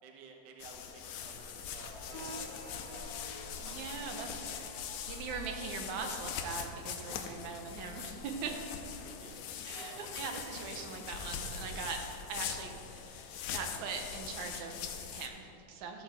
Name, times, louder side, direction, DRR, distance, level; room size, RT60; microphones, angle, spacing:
voice 1, 0.0-4.9 8.5-8.7 9.0-9.4 9.7-10.1, right 4 dB, 65° right, 2 dB, 1.1 m, -54 dB
sound 1, 0.6-15.3, left 7 dB, 85° left, 2.0 m, -42 dB
sound 2, 1.9-15.1, left 3 dB, 65° left, 1.8 m, -57 dB
Piano, 2.1-9.2, right 2 dB, 40° right, 3.6 m, -54 dB
voice 2, 3.6-4.3 5.1-8.5 9.7-12.0 12.3-16.0, right 5 dB, 85° right, 4 dB, 2.3 m, -41 dB
14.0 x 6.9 x 4.3 m, 2.6 s
omnidirectional pair, 3.3 m